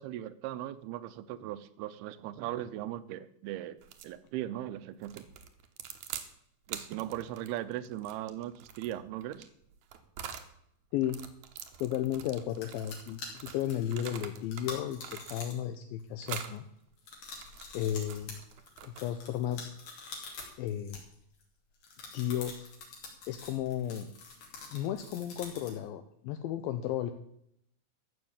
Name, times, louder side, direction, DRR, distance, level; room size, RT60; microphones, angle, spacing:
voice 1, 0.0-3.8 4.0-5.3 6.7-9.5, right 13 dB, 85° right, 14 dB, 2.7 m, -38 dB
sound 1, 3.8-4.2 5.0-6.3 6.7-10.5 11.0-14.7 15.0-15.8 16.2-16.6 17.1-19.2, right 9 dB, 65° right, 2.0 m, -45 dB
voice 2, 11.8-16.6 17.7-18.4 18.8-19.7 20.6-21.0 22.1-22.7 23.3-24.1 24.7-27.1, left 11 dB, 80° left, 8 dB, 2.4 m, -34 dB
sound 2, 12.1-12.2 12.5-15.7 16.0-16.4 17.0-21.4 21.8-25.8, left 4 dB, 60° left, 4.4 m, -46 dB
14.0 x 6.4 x 8.8 m, 0.73 s
omnidirectional pair, 4.5 m